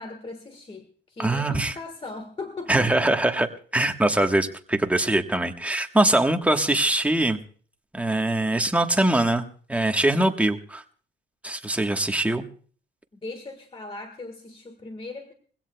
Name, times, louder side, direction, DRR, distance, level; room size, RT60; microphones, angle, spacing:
voice 1, 0.0-3.1 13.1-15.3, left 3 dB, 30° left, 7 dB, 1.6 m, -38 dB
voice 2, 1.2-1.7 2.7-3.5 3.7-7.4 7.9-9.4 9.7-10.8 11.4-12.4, right 1 dB, 5° right, 5 dB, 1.3 m, -22 dB
22.0 x 16.5 x 2.3 m, 0.44 s
cardioid pair, 90°, 20 cm